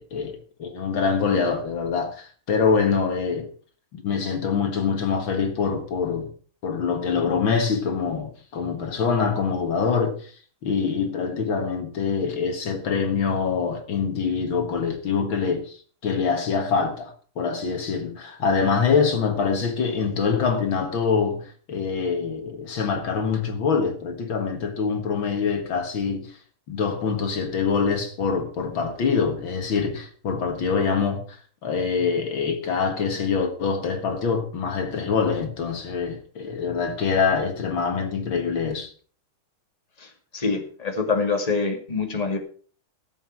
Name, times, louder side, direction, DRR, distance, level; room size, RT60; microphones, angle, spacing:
voice 1, 0.0-3.5 3.9-6.3 6.6-10.3 10.6-26.4 26.7-38.9, left 5 dB, 65° left, 2.4 m, -25 dB
voice 2, 40.3-42.4, left 4 dB, 20° left, 2.3 m, -25 dB
16.0 x 7.8 x 5.9 m
omnidirectional pair, 2.3 m